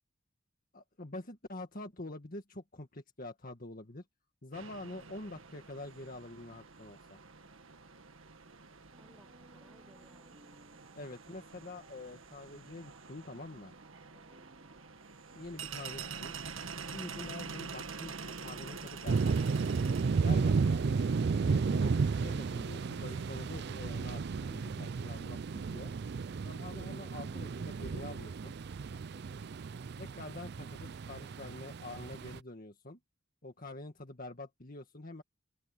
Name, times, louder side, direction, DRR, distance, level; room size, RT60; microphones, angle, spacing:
voice 1, 0.7-4.0 4.4-7.2 11.0-13.7 15.3-16.4 16.9-19.3 20.2-21.0 21.4-25.9 26.4-28.5 30.0-33.0 33.4-35.2, left 2 dB, 45° left, 1.9 m, -46 dB
sound 1, 4.5-23.8, right 5 dB, 80° right, 1.7 m, -47 dB
sound 2, 8.9-16.5, right 1 dB, 35° right, 4.4 m, -63 dB
voice 2, 9.0-11.0 14.1-14.5, equal, ahead, 5.9 m, -65 dB
sound 3, 19.1-32.4, right 4 dB, 55° right, 0.4 m, -33 dB
head